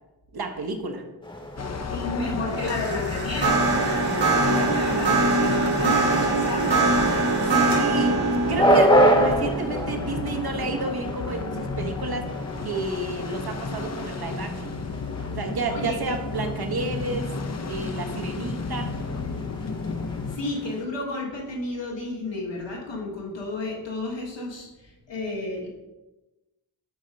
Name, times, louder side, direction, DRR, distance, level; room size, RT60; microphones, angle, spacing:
voice 1, 0.3-1.0 7.4-12.3 12.6-14.7 15.3-17.3 17.6-18.9, right 3 dB, 60° right, 5 dB, 1.0 m, -31 dB
sound 1, 1.2-20.9, equal, 10° left, 1.0 m, -29 dB
sound 2, 1.6-20.4, left 4 dB, 40° left, 0.6 m, -32 dB
voice 2, 1.9-6.9 15.7-16.0 20.1-25.7, left 2 dB, 90° left, -2 dB, 1.6 m, -32 dB
sound 3, 2.5-11.8, right 3 dB, 80° right, 1.8 m, -24 dB
8.2 x 2.9 x 5.2 m, 1.1 s
cardioid pair, 50°, 42 cm